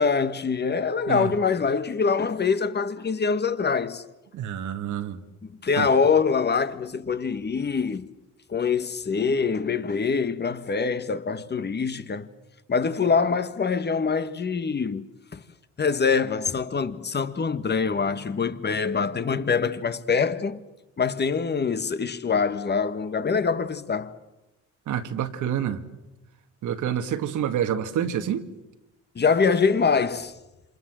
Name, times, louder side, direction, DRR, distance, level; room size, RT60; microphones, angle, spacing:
voice 1, 0.0-4.0 5.6-8.1 8.5-12.3 12.7-15.4 15.8-20.6 21.0-24.1 29.1-30.3, left 5 dB, 35° left, 1.6 m, -24 dB
voice 2, 4.3-5.2 5.8-5.9 24.9-25.8 26.6-28.5, right 9 dB, 80° right, 2.0 m, -27 dB
28.0 x 27.0 x 7.6 m
cardioid pair, 90°, 30 cm